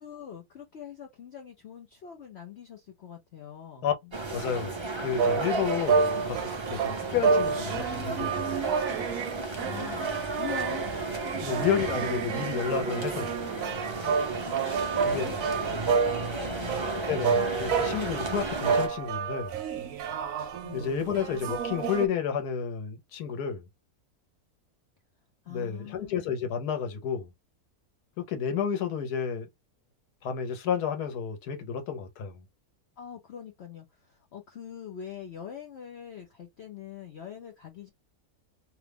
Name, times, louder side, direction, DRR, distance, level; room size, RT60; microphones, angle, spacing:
voice 1, 0.0-4.1 7.1-7.3 9.6-10.9 11.4-11.6 14.4-17.3 20.6-20.9 25.4-26.3 33.0-37.9, left 8 dB, 55° left, 0.8 m, -43 dB
sound 1, 4.1-18.9, right 3 dB, 35° right, 0.4 m, -34 dB
voice 2, 4.3-8.7 11.4-13.4 15.0-15.3 17.1-19.5 20.7-23.6 25.5-27.3 28.2-29.5 30.2-32.3, left 7 dB, 85° left, 1.4 m, -31 dB
sound 2, 5.2-22.1, right 5 dB, 65° right, 1.0 m, -30 dB
2.9 x 2.2 x 3.4 m
omnidirectional pair, 1.6 m